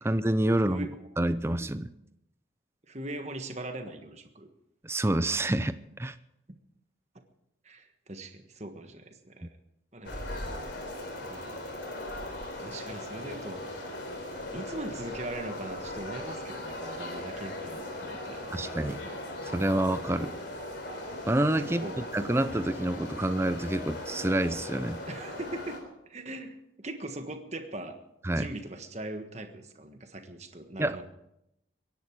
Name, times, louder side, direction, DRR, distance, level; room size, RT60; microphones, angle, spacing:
voice 1, 0.0-0.9 1.2-1.9 4.8-6.1 18.5-19.0 19.5-20.3 21.3-21.8 22.1-25.0 28.2-28.5 30.8-31.0, right 1 dB, 15° right, 12 dB, 0.5 m, -27 dB
voice 2, 2.8-4.5 6.5-6.6 7.6-9.5 9.9-10.2 11.3-11.7 12.6-13.6 14.5-18.6 19.0-19.2 21.6-22.1 25.1-28.0 28.3-31.0, right 1 dB, 35° right, 6 dB, 1.5 m, -40 dB
sound 1, 10.0-25.8, left 1 dB, 65° left, 3.6 m, -39 dB
23.5 x 10.5 x 4.7 m, 0.84 s
head